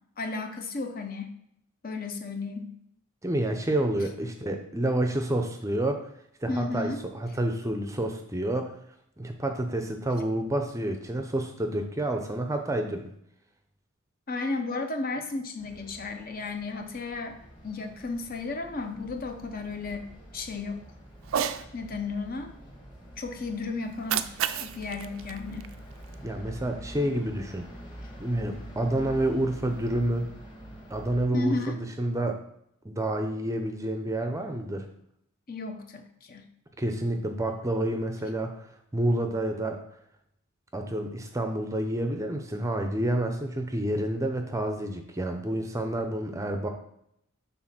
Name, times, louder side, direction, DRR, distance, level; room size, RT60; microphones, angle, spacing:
voice 1, 0.2-1.3 1.8-2.7 6.5-7.0 14.3-17.4 17.6-20.1 20.3-20.8 21.7-22.5 23.2-24.3 24.6-25.7 31.3-31.8 35.5-36.5, left 3 dB, 40° left, 6 dB, 0.7 m, -33 dB
voice 2, 3.2-6.1 6.4-8.7 9.2-13.1 26.2-27.7 28.2-30.3 30.9-32.4 32.8-34.9 36.8-38.7 38.9-39.8 40.7-46.7, right 1 dB, 15° right, 5 dB, 0.6 m, -29 dB
sound 1, 15.6-31.3, right 1 dB, 20° left, 1.5 m, -46 dB
Cat, 21.2-21.6 23.8-26.2, right 9 dB, 65° right, 0.4 m, -32 dB
6.4 x 4.0 x 5.9 m, 0.75 s
head